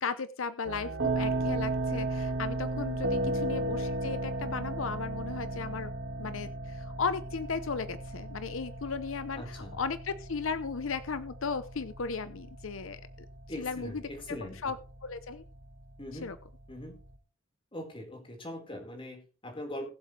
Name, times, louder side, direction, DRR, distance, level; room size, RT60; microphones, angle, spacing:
voice 1, 0.0-5.9 6.2-13.0 13.6-14.0 14.6-14.8 15.0-15.4 16.2-16.4, left 5 dB, 80° left, 13 dB, 0.7 m, -36 dB
sound 1, 0.6-17.1, right 2 dB, 65° right, 1.8 m, -36 dB
voice 2, 9.3-9.7 13.5-14.7 16.0-16.3 16.7-17.0 17.7-19.9, left 1 dB, 25° left, 1 dB, 4.4 m, -41 dB
20.0 x 7.4 x 3.3 m, 0.36 s
head